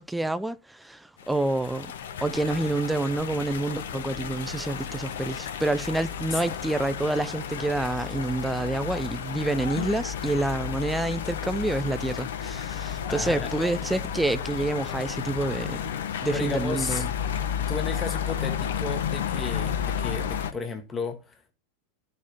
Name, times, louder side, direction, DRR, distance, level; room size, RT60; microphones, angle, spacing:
voice 1, 0.0-1.9 2.2-15.9 16.2-17.1, right 2 dB, 5° right, 0.6 m, -28 dB
sound 1, 1.2-20.5, left 8 dB, 60° left, 0.9 m, -32 dB
voice 2, 13.1-13.5 16.3-17.0 17.3-21.5, left 4 dB, 20° left, 1.6 m, -34 dB
14.5 x 5.5 x 3.0 m
figure-of-eight pair, 90°, 0 cm